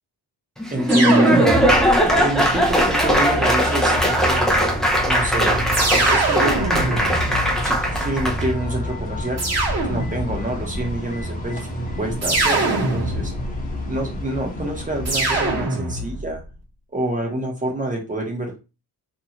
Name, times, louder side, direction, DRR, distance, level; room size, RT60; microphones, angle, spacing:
Laughter / Applause, 0.6-8.5, equal, ahead, 0.3 m, -19 dB
voice 1, 0.7-1.6 2.0-4.6 5.1-5.6 6.0-7.0 7.6-9.4 9.8-11.7 12.0-13.3 13.9-16.4 16.9-18.6, right 1 dB, 20° right, 0 dB, 0.8 m, -27 dB
sound 1, 0.9-2.1 3.6-4.5 5.7-8.0 9.4-10.5 12.2-13.6 15.1-16.3, right 2 dB, 40° right, 1.1 m, -23 dB
sound 2, 1.7-15.7, left 1 dB, 20° left, 0.8 m, -30 dB
2.7 x 2.3 x 2.8 m, 0.29 s
cardioid pair, 125°, 41 cm